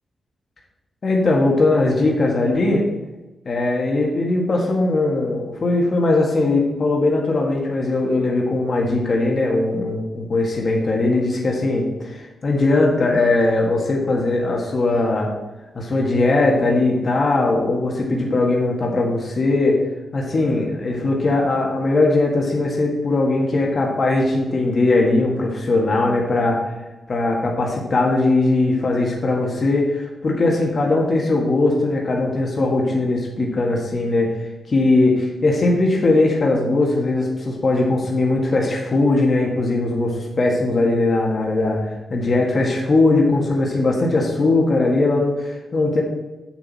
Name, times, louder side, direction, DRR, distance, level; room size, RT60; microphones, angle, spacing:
voice 1, 1.0-2.8 3.4-15.3 15.7-19.8 20.1-26.6 27.1-34.3 34.7-41.8 42.1-46.0, left 2 dB, 45° left, -1 dB, 1.5 m, -19 dB
8.0 x 7.3 x 4.1 m, 1.1 s
wide cardioid pair, 125°, 0 cm